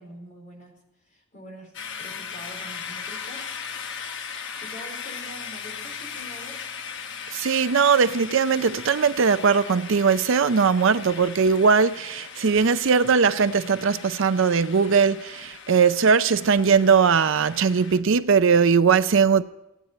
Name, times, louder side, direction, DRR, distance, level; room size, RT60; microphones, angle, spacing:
voice 1, 0.0-1.7 2.0-3.5 3.8-6.6, equal, 35° left, 4.5 m, -45 dB
sound 1, 1.7-18.0, left 6 dB, 55° left, 1.1 m, -38 dB
voice 2, 7.3-19.4, right 5 dB, 60° right, 0.5 m, -20 dB
16.0 x 9.5 x 9.1 m
head